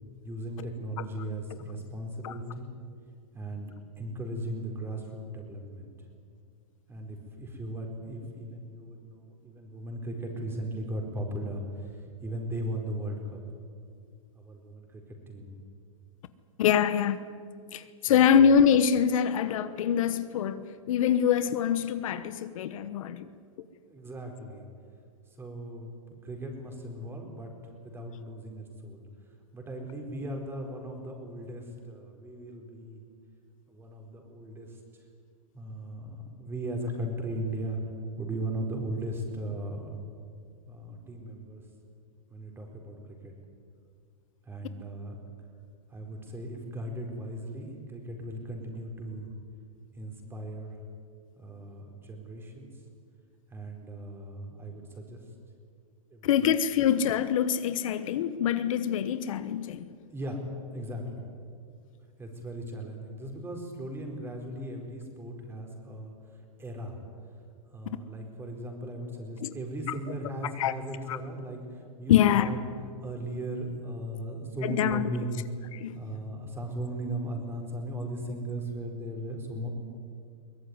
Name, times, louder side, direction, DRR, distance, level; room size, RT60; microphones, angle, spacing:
voice 1, 0.2-2.7 3.3-5.9 6.9-13.4 14.4-15.5 18.1-18.2 23.9-24.6 25.4-25.9 26.2-27.5 27.8-29.0 29.5-33.0 33.7-34.8 35.5-37.8 38.2-39.9 40.7-41.6 42.3-43.3 44.4-45.2 45.9-49.3 49.9-50.8 51.4-52.7 53.5-55.2 56.1-56.5 60.1-60.4 60.7-61.3 62.2-66.1 66.6-67.0 67.7-72.6 73.0-79.7, right 1 dB, 10° right, 3 dB, 4.3 m, -37 dB
voice 2, 16.6-17.2 17.7-23.3 56.2-59.9 69.4-69.5 70.6-70.7 71.1-71.2 72.1-72.5 74.6-75.1 75.8-75.9, left 8 dB, 65° left, 13 dB, 1.2 m, -24 dB
23.0 x 18.0 x 9.7 m, 2.2 s
hypercardioid pair, 145°, 18 cm